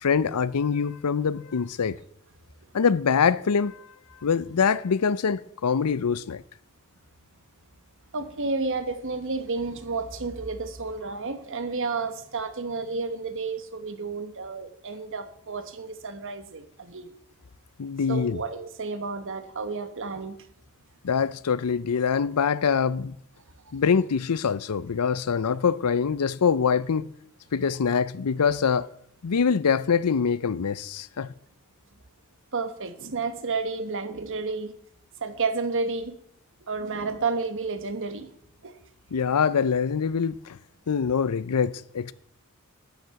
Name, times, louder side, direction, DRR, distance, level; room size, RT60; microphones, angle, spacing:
voice 1, 0.0-2.0 2.7-3.9 4.2-6.4 17.8-18.4 21.0-23.2 23.7-27.1 27.5-28.9 29.2-31.3 39.1-40.6 40.9-42.1, left 6 dB, 90° left, 0.5 m, -24 dB
voice 2, 8.1-17.1 18.1-20.4 23.7-23.8 32.5-34.7 35.2-36.2 36.7-38.3 38.6-38.7, right 4 dB, 60° right, 1.3 m, -31 dB
13.0 x 9.5 x 5.9 m
head